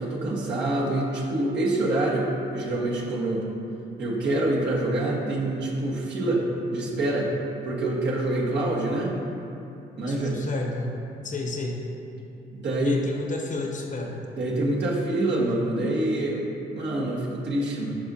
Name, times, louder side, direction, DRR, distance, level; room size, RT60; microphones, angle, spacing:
voice 1, 0.0-3.4 4.0-6.5 6.7-7.3 7.6-9.1 10.0-10.4 12.5-12.9 14.4-16.4 16.7-18.0, right 1 dB, 60° right, -4 dB, 1.5 m, -26 dB
voice 2, 10.1-11.0 11.2-11.8 12.8-14.2, left 3 dB, 40° left, 1 dB, 0.9 m, -32 dB
11.5 x 4.9 x 2.8 m, 2.8 s
cardioid pair, 90°, 20 cm